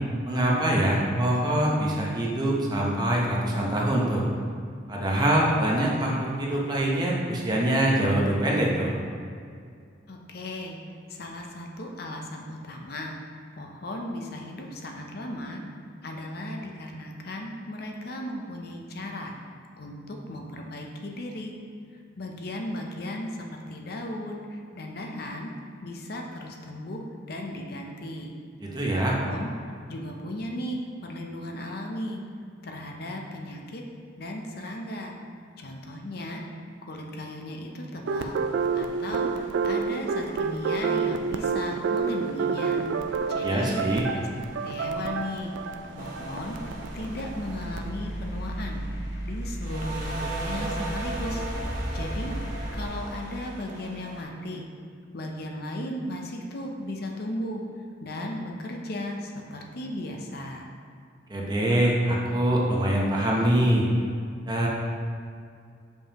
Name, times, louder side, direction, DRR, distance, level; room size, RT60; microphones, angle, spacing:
voice 1, 0.2-4.2 4.9-8.9 28.6-29.2 43.4-44.1 61.3-63.9 64.5-64.7, right 1 dB, 20° right, -3 dB, 0.8 m, -24 dB
voice 2, 10.1-10.8 11.1-13.2 13.6-15.6 16.0-19.3 19.8-21.5 22.2-25.5 25.8-27.0 27.3-28.3 28.9-29.5 29.9-32.2 32.6-33.8 34.2-35.1 35.6-36.4 36.9-38.4 38.7-42.8 43.3-43.8 44.1-44.3 44.6-45.5 45.9-46.6 46.9-48.8 49.3-51.5 51.9-52.3 52.7-54.7 55.1-57.6 58.0-60.7, left 1 dB, 55° left, 1 dB, 0.6 m, -36 dB
sound 1, 38.1-47.9, right 5 dB, 75° right, 0.3 m, -29 dB
sound 2, 45.9-52.9, equal, 90° left, 1.0 m, -35 dB
sound 3, 46.0-49.3 49.6-54.2, right 2 dB, 45° right, 1.4 m, -38 dB
7.0 x 5.3 x 2.9 m, 2.3 s
head